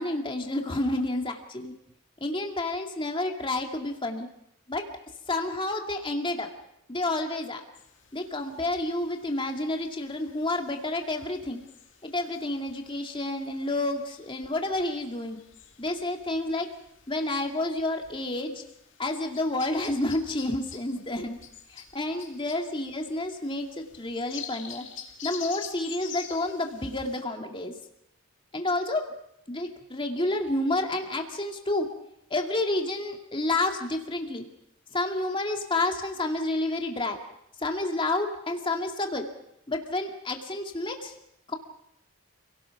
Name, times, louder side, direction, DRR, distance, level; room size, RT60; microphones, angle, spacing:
voice 1, 0.0-1.7 2.2-4.3 4.7-4.8 5.3-6.5 6.9-7.6 8.1-11.6 12.0-15.4 15.8-16.7 17.1-18.6 19.0-21.4 21.7-24.8 25.2-27.7 28.5-29.0 29.5-31.9 32.3-34.5 34.9-37.2 37.6-39.3 39.7-41.1 41.5-41.6, left 2 dB, 25° left, 3 dB, 2.2 m, -29 dB
sound 1, 7.7-27.2, left 8 dB, 60° left, 2.8 m, -48 dB
28.0 x 18.0 x 5.9 m, 0.77 s
head